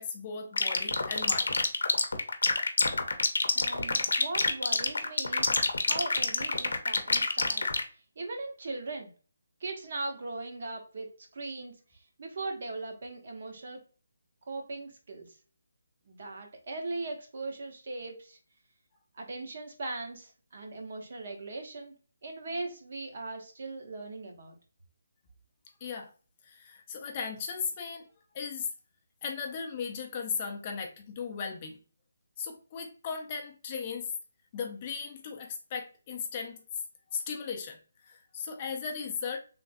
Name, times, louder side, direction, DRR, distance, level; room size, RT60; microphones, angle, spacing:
voice 1, 0.0-1.5 25.8-26.1 26.4-28.1 28.3-28.7 29.2-31.8 32.4-34.1 34.5-36.6 37.1-39.4, left 6 dB, 20° left, 1 dB, 0.4 m, -37 dB
sound 1, 0.6-7.8, left 3 dB, 85° left, 0.6 m, -26 dB
voice 2, 3.5-5.5 5.8-7.6 8.2-9.1 9.6-11.8 12.2-13.8 14.5-15.4 16.1-18.4 19.1-21.9 22.2-24.5, right 2 dB, 40° right, 3 dB, 0.6 m, -39 dB
3.2 x 2.4 x 2.5 m, 0.38 s
hypercardioid pair, 180°, 0 cm